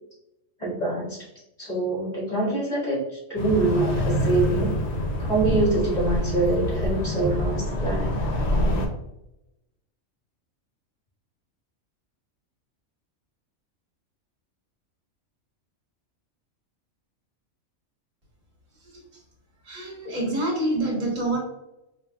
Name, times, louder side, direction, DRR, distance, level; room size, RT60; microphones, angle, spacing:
voice 1, 0.6-1.3 1.6-4.8 5.2-8.4, right 3 dB, 35° left, -7 dB, 1.7 m, -25 dB
sound 1, 3.4-8.9, left 1 dB, 55° left, 0.4 m, -26 dB
voice 2, 19.6-21.4, right 1 dB, 75° right, -4 dB, 1.7 m, -26 dB
5.0 x 2.2 x 2.2 m, 0.87 s
omnidirectional pair, 1.4 m